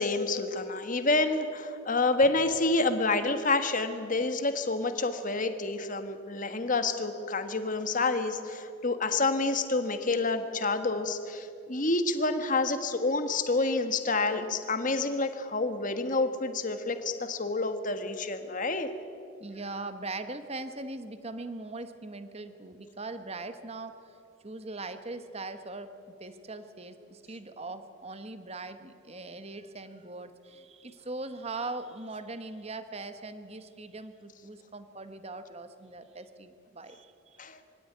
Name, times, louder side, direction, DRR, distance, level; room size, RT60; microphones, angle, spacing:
voice 1, 0.0-18.9 37.4-37.6, left 3 dB, 40° left, 9 dB, 1.5 m, -28 dB
voice 2, 19.4-23.9 24.4-25.9 26.2-37.5, right 2 dB, 30° right, 10 dB, 1.2 m, -40 dB
23.5 x 17.0 x 9.4 m, 2.6 s
head